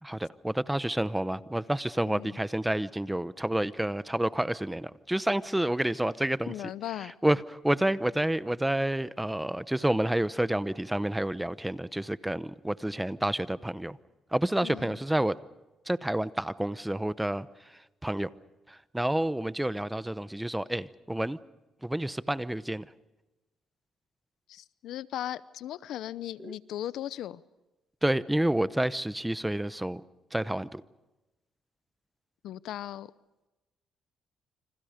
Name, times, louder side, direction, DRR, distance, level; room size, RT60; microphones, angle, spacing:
voice 1, 0.0-6.5 7.2-14.0 14.3-15.4 15.9-17.5 18.0-18.3 18.7-21.4 21.8-22.9 26.4-26.6 28.0-30.0 30.3-30.8, right 1 dB, 5° right, 15 dB, 0.9 m, -29 dB
voice 2, 2.0-2.4 6.5-7.1 14.6-15.0 24.5-27.4 32.4-33.1, left 12 dB, 80° left, 17 dB, 0.7 m, -37 dB
29.0 x 26.5 x 5.1 m, 1.0 s
cardioid pair, 90°, 0 cm